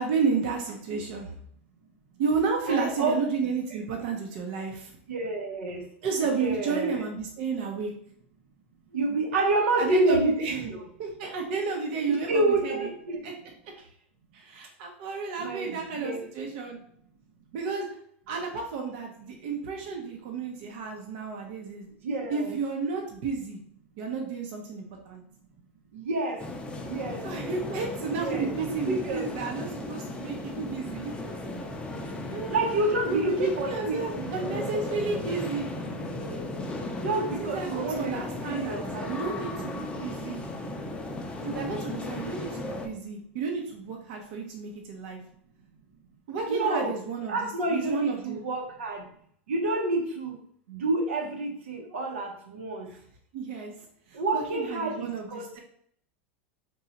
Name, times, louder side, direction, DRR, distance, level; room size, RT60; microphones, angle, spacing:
voice 1, 0.0-1.3 2.2-4.9 6.0-7.9 9.8-10.7 11.0-12.9 13.2-13.3 14.3-16.8 17.5-17.9 18.3-21.9 22.3-23.6 24.0-25.2 27.2-31.1 32.3-32.6 33.1-35.7 37.4-38.8 39.1-40.4 41.4-45.2 46.3-48.4 52.9-53.0 53.3-53.7 54.1-55.6, right 5 dB, 60° right, 1 dB, 0.7 m, -32 dB
voice 2, 2.7-3.2 5.1-5.9 6.3-7.0 8.9-10.8 12.1-13.2 15.4-16.2 22.0-22.6 25.9-26.4 26.8-27.2 28.1-28.5 28.8-29.3 32.5-34.7 37.0-38.2 38.5-39.7 46.5-47.0 47.3-49.1 49.5-50.4 50.7-52.9 54.1-55.6, right 2 dB, 90° right, 1 dB, 0.9 m, -28 dB
sound 1, 26.4-42.9, left 2 dB, 15° left, 0.5 m, -36 dB
2.8 x 2.3 x 4.0 m, 0.64 s
supercardioid pair, 125°, 7 cm